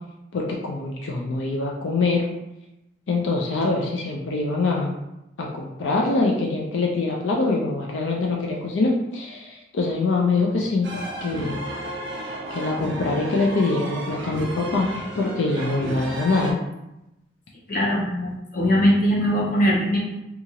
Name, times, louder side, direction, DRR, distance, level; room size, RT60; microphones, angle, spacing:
voice 1, 0.3-2.3 3.1-4.9 5.4-10.9 11.2-11.6 12.5-16.6, left 3 dB, 85° left, -1 dB, 0.4 m, -24 dB
sound 1, 10.8-16.5, right 1 dB, 75° right, 0.6 m, -33 dB
voice 2, 17.7-20.0, equal, 45° left, -3 dB, 0.7 m, -21 dB
2.8 x 2.4 x 2.7 m, 0.91 s
head